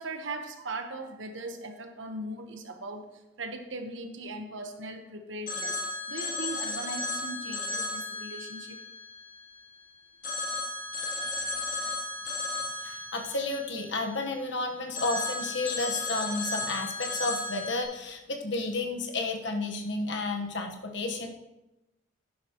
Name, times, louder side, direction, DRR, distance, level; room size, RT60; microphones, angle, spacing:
voice 1, 0.0-3.1 3.4-5.8 6.1-8.8 11.2-11.3 11.8-11.9 12.2-12.6, right 2 dB, 85° right, 6 dB, 1.2 m, -39 dB
Telephone, 5.5-9.7 10.2-14.5 14.9-17.8, left 2 dB, 45° left, 2.0 m, -35 dB
voice 2, 12.8-21.3, left 2 dB, 70° left, 3 dB, 1.4 m, -32 dB
11.0 x 10.5 x 3.1 m, 0.97 s
head